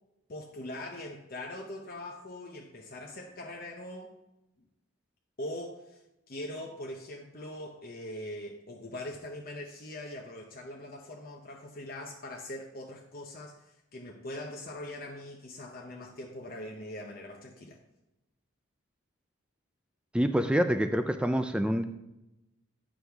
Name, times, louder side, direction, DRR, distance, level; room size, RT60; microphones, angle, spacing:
voice 1, 0.3-4.2 5.4-17.8, left 1 dB, 45° left, 1 dB, 0.7 m, -42 dB
voice 2, 20.1-21.8, equal, 5° right, 9 dB, 0.3 m, -26 dB
9.5 x 6.3 x 3.4 m, 0.94 s
head